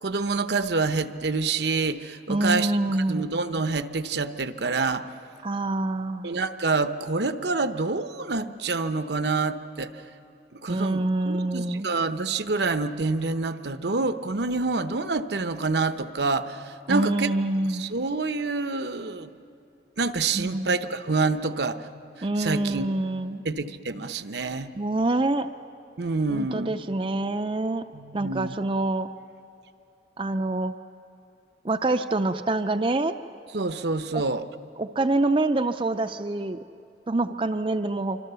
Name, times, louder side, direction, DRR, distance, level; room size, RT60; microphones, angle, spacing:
voice 1, 0.0-5.1 6.2-9.9 10.6-17.3 17.7-19.3 20.0-21.8 22.2-22.9 23.4-24.7 26.0-26.7 27.9-28.6 33.5-34.5, right 3 dB, 70° right, 10 dB, 0.9 m, -27 dB
voice 2, 2.3-3.3 5.4-6.3 10.7-11.9 16.9-17.9 20.3-20.7 22.2-23.4 24.8-25.5 26.3-27.8 28.1-29.1 30.2-30.7 31.6-33.2 34.1-34.2 34.8-36.6 37.1-38.2, right 2 dB, 30° right, 8 dB, 0.5 m, -26 dB
27.0 x 25.5 x 6.9 m, 2.7 s
head